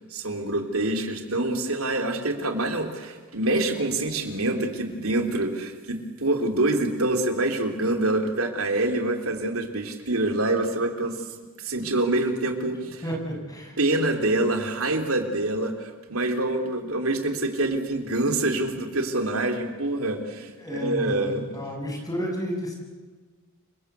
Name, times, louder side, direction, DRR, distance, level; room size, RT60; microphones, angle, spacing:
voice 1, 0.1-11.3 11.6-13.0 13.8-21.5, right 2 dB, 70° right, 5 dB, 3.4 m, -26 dB
voice 2, 13.0-13.8 20.6-22.7, equal, 15° left, 0 dB, 7.1 m, -31 dB
29.0 x 24.0 x 8.3 m, 1.4 s
head